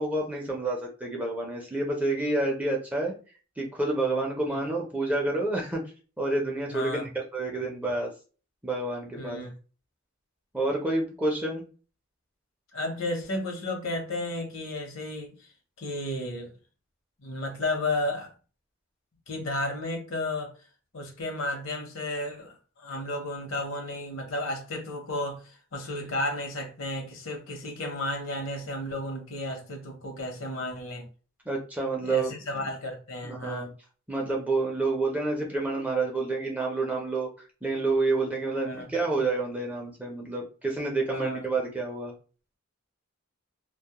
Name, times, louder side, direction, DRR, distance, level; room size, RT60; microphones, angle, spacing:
voice 1, 0.0-3.1 3.6-5.8 6.2-8.1 8.6-9.4 10.5-11.6 31.5-32.7 33.2-33.7 34.1-37.3 37.6-42.1, right 2 dB, 5° right, 0.5 m, -29 dB
voice 2, 6.7-7.1 9.2-9.5 12.7-15.5 15.8-16.5 17.2-18.3 19.3-20.5 20.9-31.1 32.0-33.7 38.6-38.9 41.1-41.5, left 2 dB, 70° left, 0.8 m, -33 dB
2.2 x 2.0 x 2.8 m
head